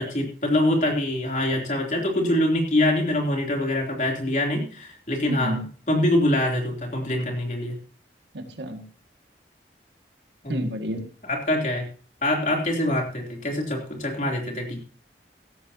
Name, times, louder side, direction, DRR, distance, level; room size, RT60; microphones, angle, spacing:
voice 1, 0.0-5.6 5.9-7.8 10.4-10.7 11.3-11.9 12.2-14.8, left 1 dB, 45° left, 1 dB, 3.3 m, -24 dB
voice 2, 5.3-5.6 8.3-8.9 10.5-11.1, equal, 85° right, 5 dB, 2.1 m, -30 dB
16.5 x 13.0 x 2.9 m, 0.40 s
head